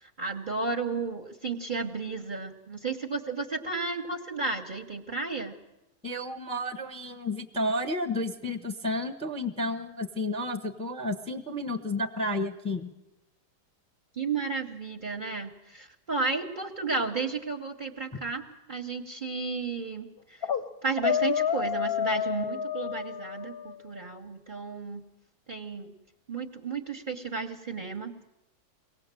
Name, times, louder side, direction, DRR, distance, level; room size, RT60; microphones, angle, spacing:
voice 1, 0.0-5.6 14.2-20.5 20.8-25.0 25.5-25.9 26.3-28.2, right 4 dB, 35° right, 3 dB, 1.0 m, -33 dB
voice 2, 6.0-12.9, left 1 dB, 5° left, 6 dB, 0.8 m, -31 dB
sound 1, 20.2-20.6 21.0-23.8, left 8 dB, 45° left, 0.9 m, -29 dB
23.5 x 18.0 x 7.5 m, 0.97 s
omnidirectional pair, 1.7 m